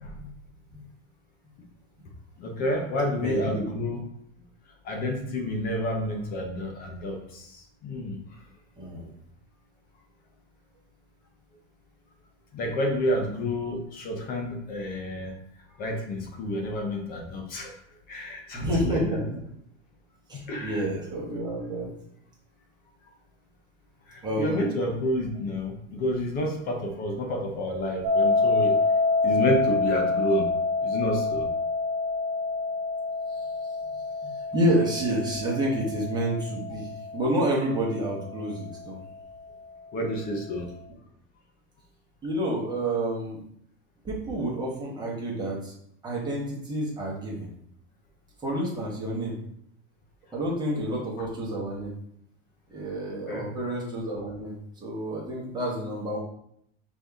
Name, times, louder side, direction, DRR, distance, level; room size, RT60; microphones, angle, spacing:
voice 1, 2.4-4.0 4.8-8.2 12.5-15.3 15.8-17.8 18.1-19.2 20.4-20.9 24.1-28.8 29.2-30.5 30.8-31.5 39.9-40.7 51.2-51.3 53.1-53.5, left 1 dB, 25° left, 2 dB, 0.5 m, -29 dB
voice 2, 3.2-3.7 8.8-9.1 18.5-19.3 20.3-21.9 24.2-24.7 34.5-39.0 42.2-43.4 44.0-45.7 46.0-47.5 48.4-49.4 50.3-51.9 52.7-56.2, right 1 dB, 10° right, -5 dB, 1.0 m, -29 dB
sound 1, 28.0-39.0, left 3 dB, 35° right, 0.5 m, -27 dB
5.1 x 2.7 x 3.5 m, 0.71 s
supercardioid pair, 170°, 39 cm